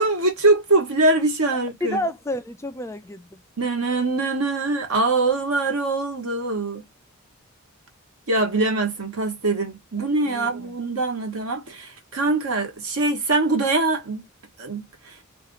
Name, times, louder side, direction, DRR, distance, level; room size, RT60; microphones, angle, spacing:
voice 1, 0.0-2.0 3.6-6.8 8.3-14.2 14.6-15.1, right 2 dB, 90° right, 1.2 m, -23 dB
voice 2, 1.8-3.4 10.3-10.7, left 1 dB, 15° left, 0.4 m, -30 dB
2.8 x 2.5 x 3.8 m
head